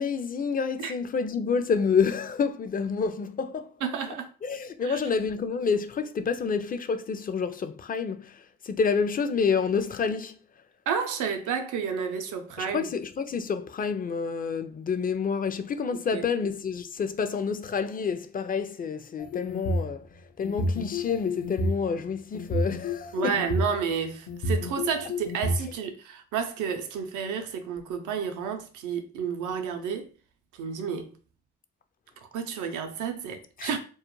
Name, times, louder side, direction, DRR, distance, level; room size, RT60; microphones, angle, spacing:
voice 1, 0.0-3.7 4.4-10.4 12.6-20.1 20.4-23.4 33.6-33.7, left 5 dB, 30° left, 0.4 m, -28 dB
voice 2, 3.8-4.3 4.8-5.0 10.9-12.9 16.1-16.2 23.1-30.1 30.6-31.1 32.3-33.8, right 6 dB, 80° right, 0.5 m, -31 dB
sound 1, 19.2-19.9 20.4-21.8 22.3-23.6 24.3-25.6, left 1 dB, 70° left, 0.6 m, -29 dB
2.3 x 2.1 x 2.9 m
supercardioid pair, 50°, 30 cm